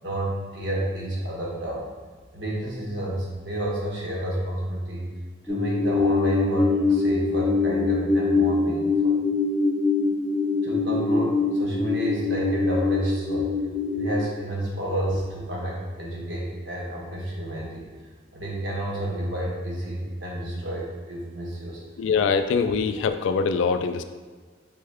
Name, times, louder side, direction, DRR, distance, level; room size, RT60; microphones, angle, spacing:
voice 1, 0.0-1.8 2.3-5.1 5.4-9.2 10.6-13.6 13.9-17.9 18.3-21.8, right 1 dB, 70° right, -3 dB, 1.2 m, -30 dB
sound 1, 5.5-14.2, left 3 dB, 5° right, 0.6 m, -23 dB
voice 2, 22.0-24.0, left 5 dB, 75° left, 9 dB, 0.3 m, -23 dB
4.3 x 3.4 x 3.4 m, 1.5 s
head